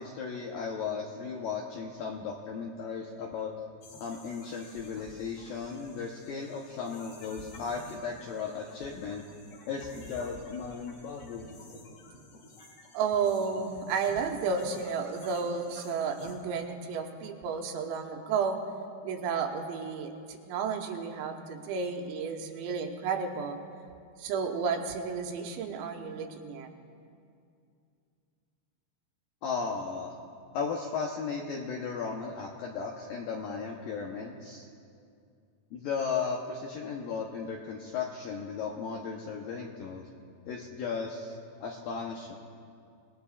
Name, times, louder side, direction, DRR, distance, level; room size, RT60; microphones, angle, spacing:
voice 1, 0.0-3.5 4.0-9.2 9.7-11.6 29.4-30.1 30.5-34.7 35.7-40.1 40.5-42.3, left 5 dB, 80° left, 0 dB, 2.0 m, -36 dB
sound 1, 3.8-16.3, left 2 dB, 55° left, 4.1 m, -51 dB
voice 2, 12.9-18.6 19.0-23.6 24.2-26.7, right 5 dB, 80° right, 3 dB, 3.2 m, -32 dB
29.5 x 20.0 x 2.4 m, 2.4 s
omnidirectional pair, 5.4 m